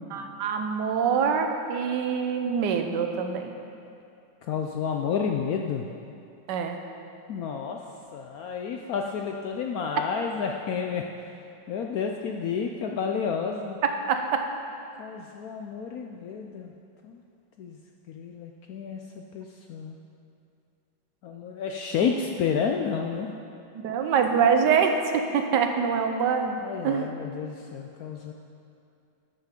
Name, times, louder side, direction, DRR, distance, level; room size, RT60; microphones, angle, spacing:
voice 1, 0.1-3.5 6.5-6.8 13.8-14.5 22.0-22.1 23.8-27.1, right 6 dB, 70° right, 5 dB, 1.3 m, -25 dB
voice 2, 4.5-5.9 7.3-7.8 8.1-11.0 11.7-13.8 15.0-16.7 17.0-17.2 17.6-17.8 18.1-20.0 21.2-23.3 26.6-28.3, left 6 dB, 80° left, 2 dB, 0.8 m, -30 dB
13.5 x 5.7 x 5.2 m, 2.6 s
omnidirectional pair, 2.1 m